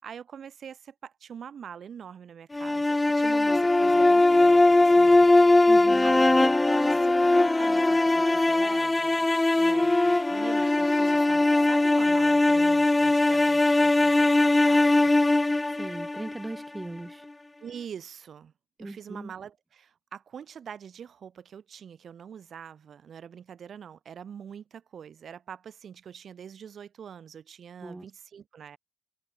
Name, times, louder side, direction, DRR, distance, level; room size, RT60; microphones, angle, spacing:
voice 1, 0.0-5.7 6.0-9.2 9.6-15.1 17.6-18.5 18.8-28.8, right 8 dB, 55° right, 5.8 m, -44 dB
sound 1, 2.5-16.7, left 2 dB, 15° left, 0.5 m, -21 dB
voice 2, 5.7-6.1 15.7-17.3 18.8-19.3 27.8-28.1, right 2 dB, 15° right, 1.7 m, -38 dB
cardioid pair, 90°, 0 cm